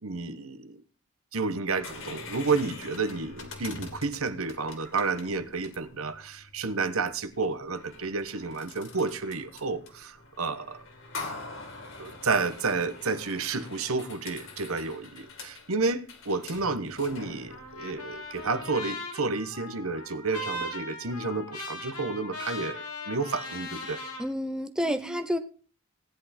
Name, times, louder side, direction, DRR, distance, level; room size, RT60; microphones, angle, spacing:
voice 1, 0.0-0.8 1.3-10.8 12.0-22.8 23.1-24.0 24.9-25.2, right 4 dB, 70° right, 1.1 m, -31 dB
sound 1, 1.7-18.6, left 3 dB, 60° left, 2.7 m, -45 dB
Trumpet, 17.5-24.2, left 2 dB, 90° left, 3.4 m, -39 dB
voice 2, 24.2-25.4, equal, 5° right, 0.7 m, -29 dB
16.5 x 10.0 x 4.3 m
head